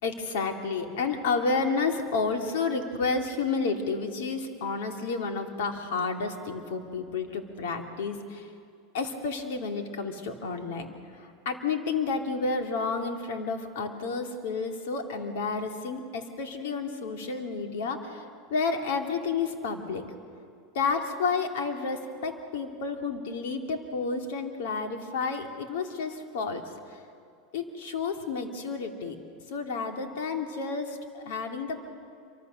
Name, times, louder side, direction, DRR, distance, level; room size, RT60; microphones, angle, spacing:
voice 1, 0.0-8.5 8.9-10.9 11.1-20.0 20.7-26.6 27.5-29.1 29.5-31.8, left 4 dB, 70° left, 4 dB, 2.9 m, -31 dB
27.0 x 24.5 x 6.7 m, 2.4 s
hypercardioid pair, 95°, 0 cm